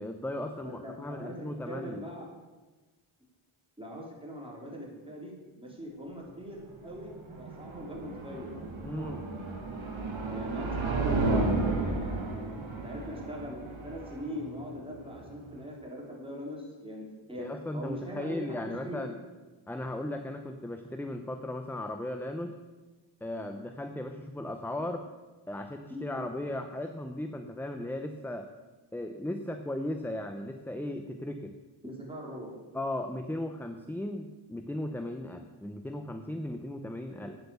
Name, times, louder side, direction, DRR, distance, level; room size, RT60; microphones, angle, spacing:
voice 1, 0.0-2.0 8.8-9.2 17.4-19.1 19.7-22.5 23.2-25.0 25.5-28.5 28.9-31.5 32.7-37.4, left 1 dB, 5° left, 6 dB, 0.6 m, -36 dB
voice 2, 0.6-2.3 3.8-8.5 9.0-9.2 10.3-11.2 11.5-12.6 12.8-17.5 17.7-19.1 25.9-26.2 31.8-32.5, equal, 10° right, -3 dB, 3.6 m, -41 dB
sound 1, 6.6-15.6, right 2 dB, 70° right, 1.8 m, -33 dB
9.1 x 7.9 x 6.9 m, 1.2 s
wide cardioid pair, 80°, 48 cm